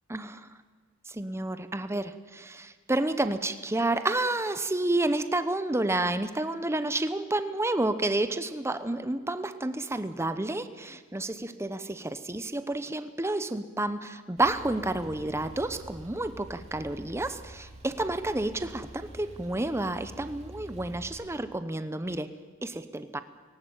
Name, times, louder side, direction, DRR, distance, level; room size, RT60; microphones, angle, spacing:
voice 1, 0.1-0.4 1.1-22.3 22.6-23.2, right 2 dB, 15° right, 11 dB, 0.8 m, -30 dB
Male speech man speaking / Car / Idling, 14.4-21.2, right 1 dB, 30° right, 3.3 m, -47 dB
19.0 x 18.0 x 8.9 m, 1.5 s
head